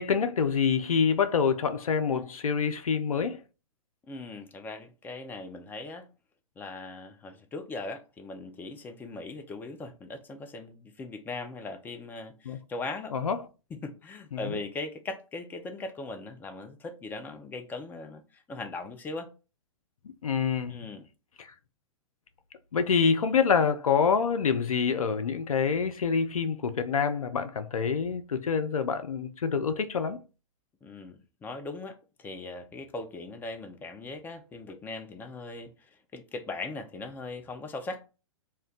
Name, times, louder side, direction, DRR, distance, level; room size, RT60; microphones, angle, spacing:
voice 1, 0.0-3.4 12.5-12.6 13.1-13.4 14.3-14.6 20.2-20.8 21.4-21.5 22.7-30.2, left 6 dB, 85° left, 0.4 m, -26 dB
voice 2, 4.1-6.1 6.6-13.1 13.8-18.2 18.5-19.3 20.7-21.1 30.8-38.0, left 3 dB, 10° left, 0.4 m, -39 dB
2.1 x 2.1 x 3.8 m
figure-of-eight pair, 115°, 17 cm